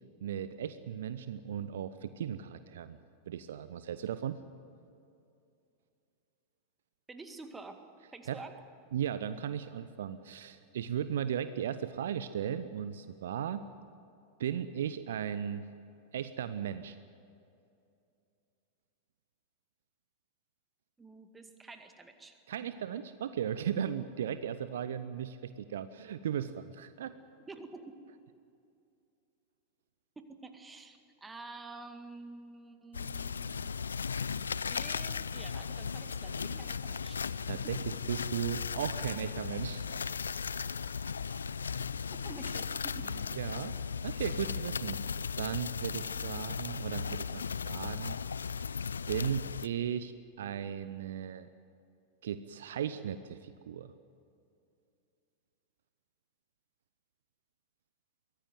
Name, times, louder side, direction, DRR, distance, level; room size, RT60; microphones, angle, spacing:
voice 1, 0.2-3.0 3.3-4.4 8.3-8.4 8.9-13.6 14.4-15.6 16.1-17.0 22.5-27.1 37.5-39.8 43.0-43.8 44.0-45.0 45.4-48.2 49.1-51.5 52.2-53.9, right 9 dB, 60° right, 13 dB, 0.7 m, -36 dB
voice 2, 7.1-7.8 8.1-8.6 21.0-22.4 27.5-28.0 30.2-33.8 34.7-37.3 37.6-37.7 42.2-43.1, right 3 dB, 10° right, 6 dB, 2.0 m, -49 dB
sound 1, 32.9-49.7, left 6 dB, 70° left, 0.4 m, -36 dB
23.5 x 16.5 x 9.4 m, 2.6 s
figure-of-eight pair, 90°, 0 cm